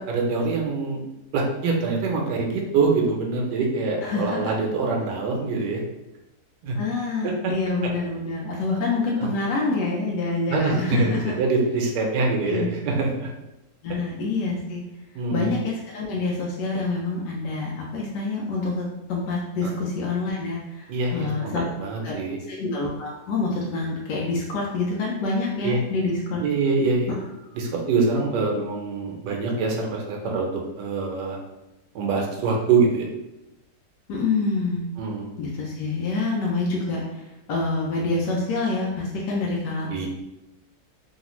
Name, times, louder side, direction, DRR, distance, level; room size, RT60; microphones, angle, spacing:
voice 1, 0.1-1.0 1.3-5.8 6.6-6.8 10.5-11.1 11.4-13.3 15.1-15.5 19.6-19.7 20.9-22.4 25.6-25.8 26.4-27.1 27.5-30.5 30.8-31.4 31.9-33.1 35.0-35.3 39.9-40.1, right 4 dB, 80° right, 0 dB, 1.2 m, -24 dB
voice 2, 4.0-4.5 6.8-11.3 12.5-12.7 13.8-14.8 15.3-21.6 22.0-22.1 22.5-26.4 34.1-34.8 35.4-40.1, left 3 dB, 90° left, -3 dB, 1.2 m, -27 dB
3.2 x 2.4 x 2.9 m, 0.96 s
omnidirectional pair, 1.8 m